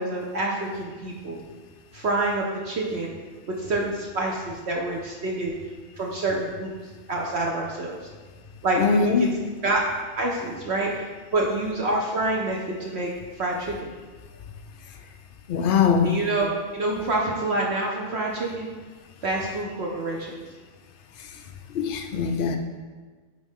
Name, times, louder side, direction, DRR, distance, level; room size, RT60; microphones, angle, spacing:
voice 1, 0.0-1.4 1.9-3.1 3.5-5.5 6.0-6.7 7.1-8.0 8.6-9.3 9.6-9.8 10.1-11.0 11.3-13.1 13.4-13.9 16.0-18.7 19.2-20.4, right 2 dB, 55° right, -2 dB, 0.9 m, -27 dB
voice 2, 8.8-9.4 15.5-16.2 21.2-21.4 21.7-22.6, left 6 dB, 70° left, 5 dB, 0.5 m, -22 dB
9.0 x 3.7 x 3.6 m, 1.4 s
omnidirectional pair, 1.4 m